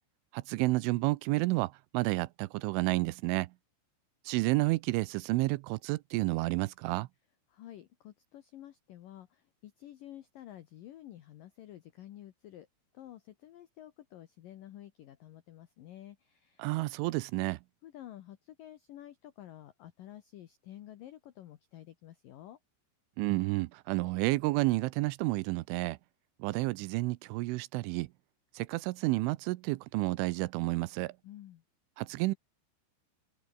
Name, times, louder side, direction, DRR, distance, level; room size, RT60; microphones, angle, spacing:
voice 1, 0.3-3.5 4.3-7.1 16.6-17.6 23.2-26.0 26.4-28.1 28.6-31.1 32.0-32.3, right 21 dB, 80° right, 3.1 m, -30 dB
voice 2, 7.5-12.7 12.9-16.7 17.8-22.6 31.2-31.6, left 12 dB, 80° left, 2.0 m, -50 dB
open air
omnidirectional pair, 5.7 m